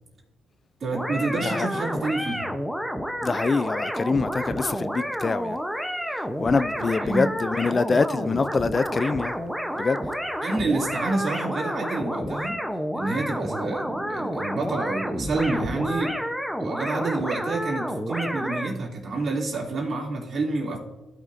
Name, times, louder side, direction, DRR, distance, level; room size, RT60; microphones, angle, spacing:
voice 1, 0.8-2.5 6.8-7.3 10.4-12.6 12.9-16.2 16.6-20.8, right 3 dB, 50° right, 2.7 m, -28 dB
sound 1, 0.9-18.7, equal, ahead, 0.8 m, -30 dB
voice 2, 3.2-5.6 6.4-9.3 9.8-10.0, left 4 dB, 35° left, 0.3 m, -25 dB
15.0 x 6.2 x 2.6 m
cardioid pair, 90°, 0 cm